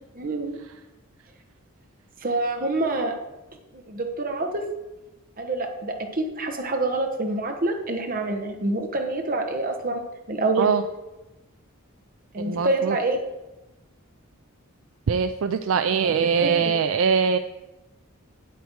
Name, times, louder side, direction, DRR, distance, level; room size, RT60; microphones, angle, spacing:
voice 1, 0.1-0.6 2.2-3.1 3.7-4.6 5.4-10.7 12.3-13.2 16.0-16.1 16.4-16.7, right 2 dB, 40° right, 4 dB, 1.2 m, -27 dB
voice 2, 12.4-13.0 15.1-17.4, right 6 dB, 65° right, 10 dB, 0.4 m, -22 dB
8.3 x 8.0 x 4.6 m, 1.0 s
head